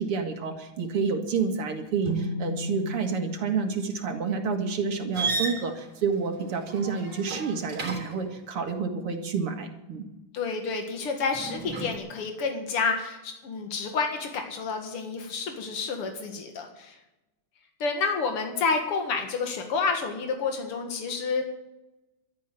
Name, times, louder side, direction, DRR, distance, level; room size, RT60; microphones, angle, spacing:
voice 1, 0.0-10.0, right 5 dB, 85° right, 5 dB, 2.8 m, -29 dB
sound 1, 2.0-5.6, equal, 15° left, 2.5 m, -36 dB
sound 2, 5.1-8.3 11.3-12.0, right 3 dB, 40° right, 3.8 m, -34 dB
voice 2, 10.3-16.9 17.8-21.4, left 4 dB, 85° left, 4 dB, 2.7 m, -29 dB
12.5 x 9.6 x 9.2 m, 0.96 s
omnidirectional pair, 2.4 m